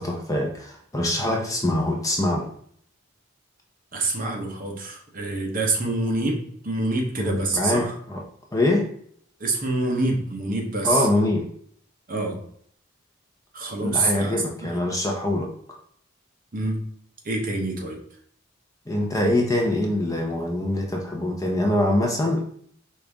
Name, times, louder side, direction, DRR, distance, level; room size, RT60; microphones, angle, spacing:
voice 1, 0.0-2.5 7.2-8.2 8.5-8.9 10.8-11.5 13.8-15.5 18.9-22.4, left 1 dB, 15° left, 1 dB, 0.6 m, -24 dB
voice 2, 3.9-8.0 9.4-11.1 12.1-12.4 13.5-14.4 14.6-14.7 16.5-16.9 17.2-18.0, right 2 dB, 45° right, 1 dB, 0.9 m, -26 dB
5.0 x 2.6 x 3.4 m, 0.62 s
head